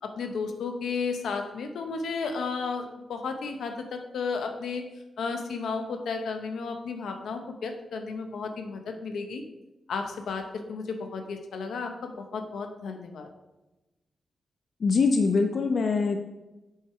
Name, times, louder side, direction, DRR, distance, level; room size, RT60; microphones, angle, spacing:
voice 1, 0.0-4.9 5.2-9.4 9.9-13.3, left 4 dB, 85° left, 5 dB, 0.8 m, -33 dB
voice 2, 14.8-16.2, left 4 dB, 55° left, 5 dB, 0.5 m, -23 dB
8.0 x 4.6 x 4.6 m, 1.0 s
wide cardioid pair, 105°, 0 cm